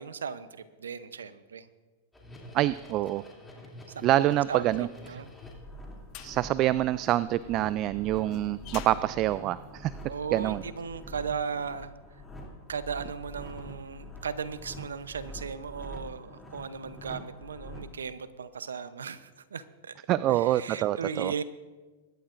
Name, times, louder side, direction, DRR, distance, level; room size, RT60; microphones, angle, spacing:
voice 1, 0.0-1.7 3.9-4.7 5.0-5.3 10.1-11.9 12.7-19.9 20.3-21.4, right 6 dB, 90° right, 13 dB, 0.7 m, -37 dB
sound 1, 2.1-18.0, equal, 10° left, 2.9 m, -46 dB
voice 2, 2.5-3.2 4.0-5.2 6.2-9.9 10.3-10.6 20.1-21.3, right 14 dB, 40° right, 17 dB, 0.3 m, -26 dB
sound 2, 5.1-10.4, left 11 dB, 45° left, 1.2 m, -48 dB
22.5 x 11.5 x 2.6 m, 1.3 s
hypercardioid pair, 115°, 0 cm